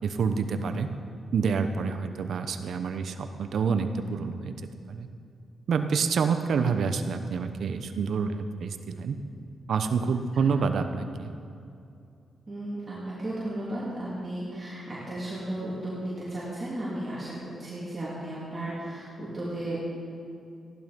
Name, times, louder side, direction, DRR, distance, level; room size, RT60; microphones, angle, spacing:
voice 1, 0.0-0.9 1.3-4.6 4.9-5.1 5.7-9.2 9.7-11.3, right 5 dB, 70° right, 8 dB, 1.0 m, -27 dB
voice 2, 12.5-17.3 17.6-19.8, right 1 dB, 35° right, -8 dB, 3.4 m, -34 dB
15.5 x 11.5 x 5.4 m, 2.5 s
cardioid pair, 75°, 0 cm